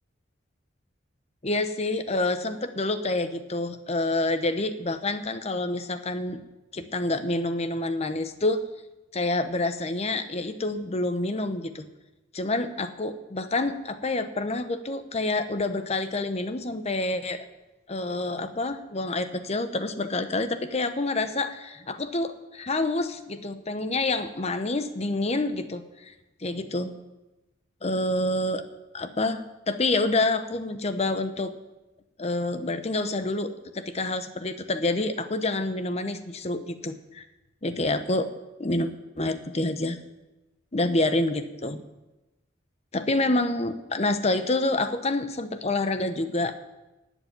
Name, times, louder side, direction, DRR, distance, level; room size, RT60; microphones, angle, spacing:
voice 1, 1.4-6.4 6.7-8.6 9.1-11.8 12.3-17.5 17.9-26.1 26.4-26.9 27.8-28.6 28.9-31.5 32.2-37.2 37.6-38.3 38.6-38.9 39.2-40.0 40.7-41.8 42.9-46.5, left 2 dB, 35° left, 10 dB, 0.8 m, -27 dB
11.5 x 8.2 x 9.0 m, 1.0 s
head